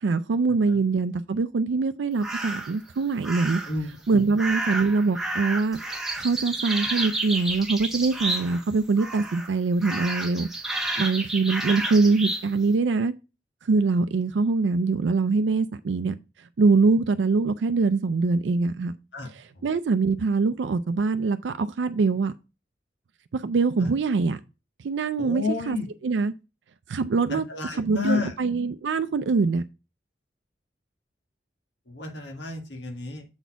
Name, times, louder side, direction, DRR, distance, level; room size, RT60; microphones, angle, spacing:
voice 1, 0.0-3.6 4.1-5.8 6.2-13.1 13.6-16.2 16.6-18.9 19.3-22.3 23.3-24.4 24.8-25.8 26.0-26.3 26.9-27.4 27.8-29.6, right 4 dB, 85° right, 0.4 m, -23 dB
sound 1, 2.2-2.8 3.2-3.8 4.4-8.7 9.0-9.5 9.8-12.5, right 2 dB, ahead, 1.1 m, -30 dB
voice 2, 3.7-4.2 19.1-19.3 25.2-25.9 27.3-28.3 31.9-33.2, left 3 dB, 80° left, 1.8 m, -31 dB
7.0 x 4.2 x 4.5 m
head